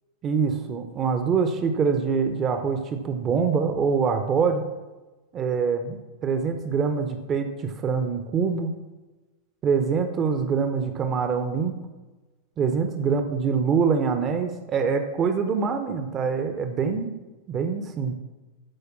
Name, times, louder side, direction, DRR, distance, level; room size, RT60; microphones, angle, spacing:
voice 1, 0.2-4.6 5.3-8.7 9.6-11.7 12.6-17.1 17.5-18.1, right 5 dB, 30° right, 7 dB, 0.9 m, -24 dB
13.0 x 5.1 x 6.0 m, 1.2 s
figure-of-eight pair, 90°, 0 cm